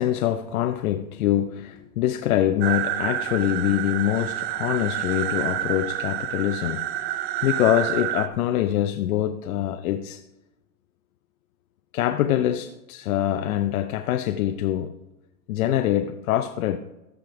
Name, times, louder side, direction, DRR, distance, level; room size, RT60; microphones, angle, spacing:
voice 1, 0.0-10.2 11.9-14.9 15.5-16.8, left 12 dB, 80° left, 0.7 m, -24 dB
sound 1, 2.6-8.3, right 12 dB, 25° right, 0.4 m, -28 dB
14.0 x 5.1 x 4.6 m
supercardioid pair, 135°, 42 cm